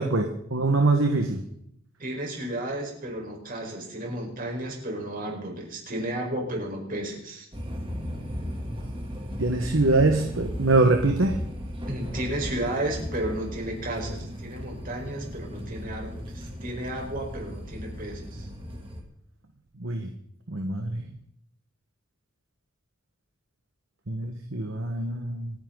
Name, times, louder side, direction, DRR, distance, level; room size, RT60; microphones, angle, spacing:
voice 1, 0.0-1.4 9.4-11.4 19.8-20.1 20.5-21.0 24.1-25.5, right 2 dB, 75° right, 4 dB, 1.6 m, -24 dB
voice 2, 2.0-7.5 11.9-18.5, right 1 dB, 45° right, 0 dB, 5.0 m, -33 dB
sound 1, 7.5-19.0, equal, 25° right, 2.9 m, -36 dB
27.0 x 10.5 x 4.0 m, 0.70 s
head